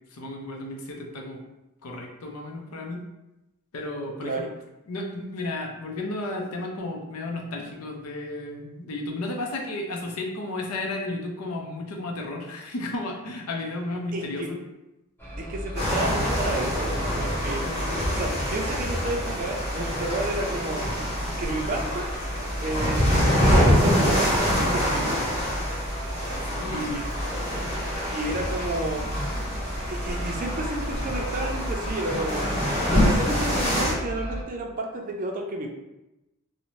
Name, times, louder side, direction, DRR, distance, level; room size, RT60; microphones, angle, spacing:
voice 1, 0.1-1.4 1.8-3.1 3.7-4.5 4.9-14.6 26.4-26.9, left 2 dB, 80° left, 1 dB, 0.5 m, -33 dB
voice 2, 14.1-14.5 15.4-17.6 18.1-20.9 21.4-22.1 22.6-24.4 24.7-25.2 26.7-27.1 28.1-29.1 29.9-35.7, right 2 dB, 40° right, 1 dB, 0.4 m, -31 dB
sound 1, 15.2-34.4, equal, 10° left, 0.6 m, -34 dB
sound 2, 15.8-33.9, equal, 30° left, 1.1 m, -26 dB
2.6 x 2.1 x 3.0 m, 0.96 s
head